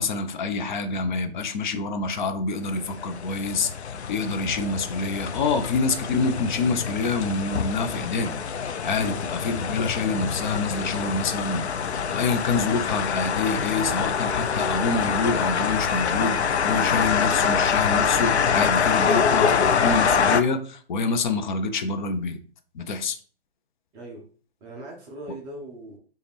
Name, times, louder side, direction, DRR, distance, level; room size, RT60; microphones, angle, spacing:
voice 1, 0.0-3.7 4.1-8.4 8.8-11.6 12.1-22.4 22.7-23.2, left 4 dB, 45° left, 7 dB, 0.7 m, -26 dB
sound 1, 2.8-20.4, left 6 dB, 90° left, 0.5 m, -25 dB
voice 2, 23.9-24.3 24.6-26.0, right 2 dB, 15° right, -1 dB, 0.5 m, -40 dB
4.9 x 2.5 x 3.3 m, 0.42 s
hypercardioid pair, 135°, 32 cm